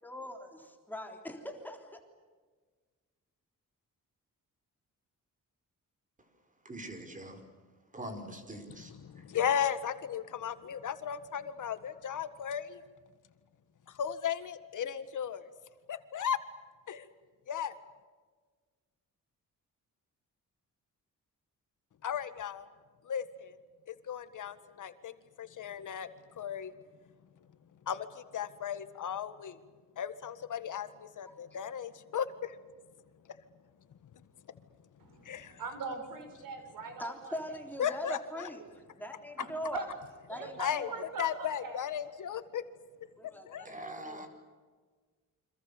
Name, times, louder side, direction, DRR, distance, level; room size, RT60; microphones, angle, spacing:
voice 1, 0.0-0.5 0.9-2.0 31.3-31.6 37.0-38.6 39.0-39.8 40.3-41.0 43.2-44.3, equal, 5° left, 3 dB, 3.6 m, -41 dB
voice 2, 6.6-7.4 7.9-8.9 43.6-44.3, right 1 dB, 25° right, 6 dB, 4.9 m, -43 dB
voice 3, 8.7-12.8 13.9-15.4 15.9-16.4 16.9-17.1 17.5-17.8 22.0-22.7 23.0-23.6 23.9-25.1 25.4-26.7 27.8-29.6 29.9-32.6 34.1-34.3 35.2-35.6 37.8-38.2 40.6-42.6 43.5-43.6, left 8 dB, 65° left, 11 dB, 1.7 m, -36 dB
voice 4, 35.0-37.6 39.4-39.8 40.3-41.8, right 3 dB, 85° right, 6 dB, 6.3 m, -42 dB
29.0 x 26.0 x 7.0 m, 1.4 s
wide cardioid pair, 150°, 33 cm